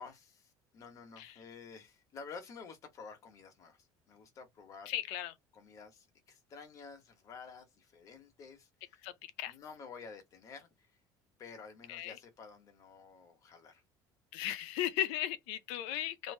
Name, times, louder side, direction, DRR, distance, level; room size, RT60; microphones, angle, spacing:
voice 1, 0.0-4.9 5.5-9.1 9.4-11.0 11.4-13.8, left 5 dB, 35° left, 1.0 m, -51 dB
voice 2, 4.9-5.3 9.0-9.1 9.4-9.5 11.9-12.2 14.3-16.3, left 13 dB, 90° left, 0.5 m, -36 dB
3.0 x 2.6 x 3.2 m
cardioid pair, 155°, 9 cm